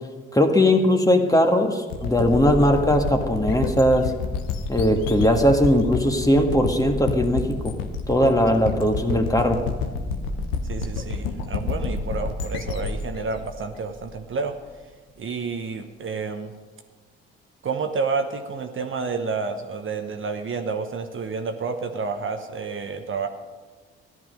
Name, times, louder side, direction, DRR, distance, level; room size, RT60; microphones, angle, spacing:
voice 1, 0.3-4.1 4.7-7.8 8.1-9.6, equal, 10° left, 4 dB, 1.7 m, -19 dB
sound 1, 1.9-14.5, left 4 dB, 80° left, 1.0 m, -29 dB
voice 2, 10.7-14.6 15.2-16.5 17.6-23.3, right 4 dB, 40° right, 6 dB, 1.1 m, -29 dB
14.5 x 11.0 x 5.2 m, 1.4 s
hypercardioid pair, 50°, 30 cm